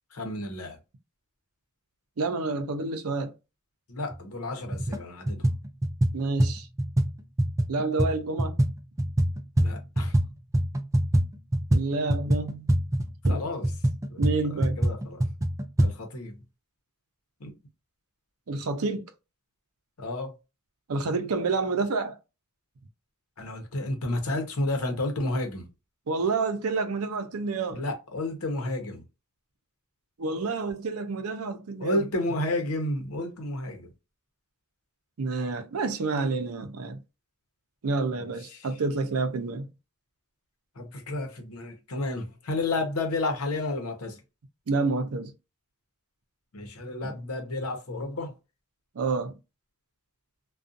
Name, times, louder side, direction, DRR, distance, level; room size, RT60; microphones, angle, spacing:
voice 1, 0.1-0.8 3.9-5.5 9.6-10.2 13.3-13.7 14.1-14.2 14.5-15.2 15.8-16.4 17.4-17.5 20.0-20.4 23.4-25.7 27.7-29.0 31.8-33.9 38.2-38.7 40.8-44.2 46.5-48.3, left 2 dB, 80° left, 0.8 m, -31 dB
voice 2, 2.2-3.3 6.1-6.7 7.7-8.5 11.7-12.7 13.3-13.4 14.2-14.8 18.5-19.1 20.9-22.2 26.1-27.8 30.2-32.0 35.2-37.0 37.8-39.7 44.7-45.3 47.0-47.1 49.0-49.4, right 3 dB, 80° right, 0.5 m, -29 dB
sound 1, 4.1-4.2 4.7-5.0 5.3-10.3 10.5-15.9, right 1 dB, 15° right, 0.3 m, -25 dB
2.4 x 2.3 x 2.5 m
head